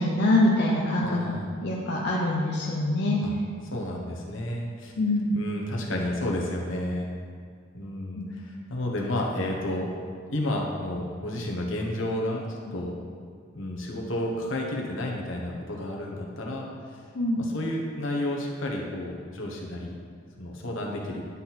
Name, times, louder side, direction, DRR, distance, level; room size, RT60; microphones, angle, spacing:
voice 1, 0.0-3.2 5.0-5.3 8.1-8.3 12.7-12.8 17.1-17.4, left 1 dB, 55° left, -3 dB, 0.8 m, -25 dB
voice 2, 1.0-1.5 3.2-3.3 3.7-4.9 5.3-7.1 7.7-9.9 10.3-12.9 13.5-17.0 17.4-20.0 20.4-21.2, left 1 dB, 75° left, -1 dB, 1.2 m, -31 dB
11.0 x 4.2 x 4.3 m, 2.1 s
head